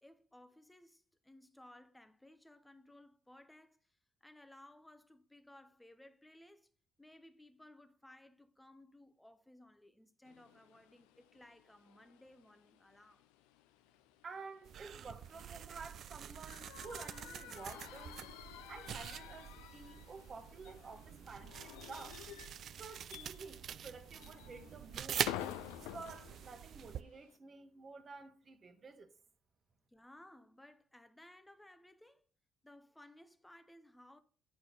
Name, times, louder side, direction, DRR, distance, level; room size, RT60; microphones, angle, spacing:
voice 1, 0.0-6.7 7.0-13.3 29.9-32.2 32.6-34.2, left 1 dB, 10° left, 0.8 m, -60 dB
sound 1, 10.2-27.4, left 12 dB, 85° left, 0.4 m, -52 dB
voice 2, 14.2-18.2 18.7-22.2 22.8-25.3 25.8-29.1, right 4 dB, 45° right, 1.2 m, -51 dB
sound 2, 14.6-27.0, right 9 dB, 60° right, 0.3 m, -45 dB
8.5 x 4.7 x 3.9 m
hypercardioid pair, 60°, 0 cm